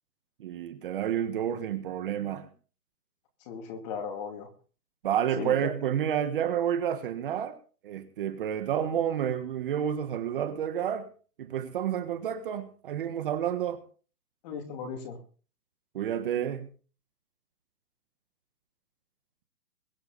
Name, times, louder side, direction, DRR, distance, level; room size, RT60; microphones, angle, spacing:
voice 1, 0.4-2.5 5.0-7.6 7.8-11.1 11.4-13.8 15.9-16.7, right 9 dB, 35° right, 9 dB, 1.5 m, -30 dB
voice 2, 3.4-4.5 5.4-5.7 14.4-15.2, left 6 dB, 25° left, 4 dB, 2.6 m, -36 dB
22.0 x 9.5 x 4.0 m, 0.39 s
hypercardioid pair, 160°, 47 cm